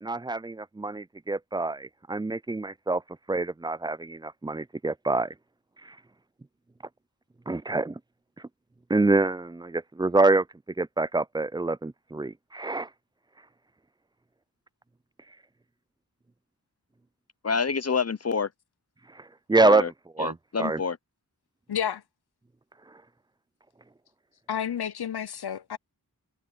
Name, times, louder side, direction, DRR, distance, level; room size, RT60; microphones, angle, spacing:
voice 1, 0.0-3.0 3.3-5.3 7.5-7.9 8.9-10.4 10.8-12.9 19.5-20.8, right 2 dB, 15° right, 0.3 m, -26 dB
voice 2, 17.4-18.5 19.6-19.9 20.2-21.0, left 5 dB, 40° left, 0.7 m, -27 dB
voice 3, 21.7-22.0 24.5-25.8, left 8 dB, 80° left, 0.6 m, -30 dB
wide cardioid pair, 45°, 38 cm